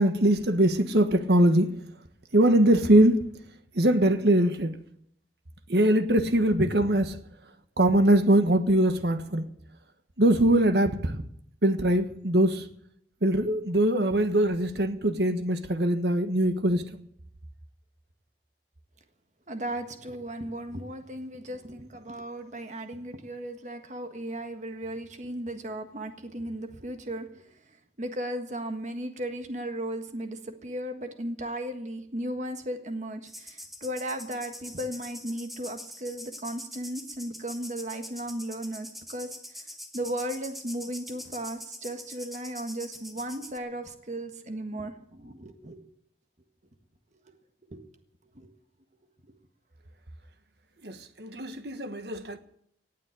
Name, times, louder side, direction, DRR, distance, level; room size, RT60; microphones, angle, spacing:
voice 1, 0.0-1.7 2.3-3.1 3.7-4.8 5.7-7.2 7.8-9.5 10.2-11.2 11.6-12.7 13.2-17.0 50.8-52.4, right 1 dB, 65° right, 1.4 m, -22 dB
voice 2, 19.5-45.8 47.7-47.8 48.4-48.5, right 1 dB, 45° right, 1.6 m, -36 dB
sound 1, 33.3-43.6, equal, ahead, 1.5 m, -44 dB
18.5 x 7.5 x 9.9 m
head